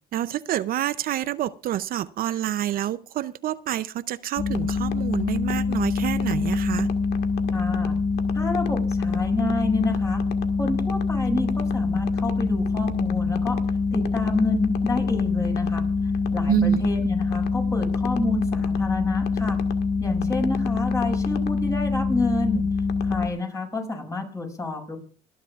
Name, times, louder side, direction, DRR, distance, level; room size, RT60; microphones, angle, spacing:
voice 1, 0.1-6.9 16.5-16.8, right 12 dB, 60° right, 0.6 m, -27 dB
sound 1, 4.4-23.3, left 4 dB, 75° left, 1.7 m, -25 dB
voice 2, 7.5-8.0 8.3-10.2 10.6-13.6 13.9-19.6 20.0-22.6 23.0-25.0, left 2 dB, 20° left, 6.1 m, -29 dB
26.0 x 10.5 x 2.4 m
cardioid pair, 110°, 17 cm